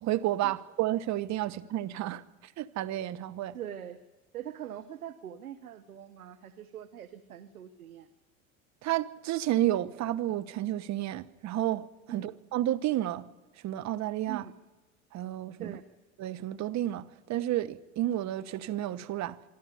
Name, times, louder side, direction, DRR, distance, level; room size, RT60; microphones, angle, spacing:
voice 1, 0.0-2.2 2.6-3.6 8.8-13.3 13.6-14.4 15.1-15.8 16.2-19.4, right 14 dB, 40° right, 1.1 m, -31 dB
voice 2, 3.5-4.0 4.3-8.1 12.1-12.3 14.3-14.5 15.6-15.8, right 10 dB, 85° right, 1.1 m, -42 dB
24.5 x 12.0 x 10.0 m
hypercardioid pair, 80°, 42 cm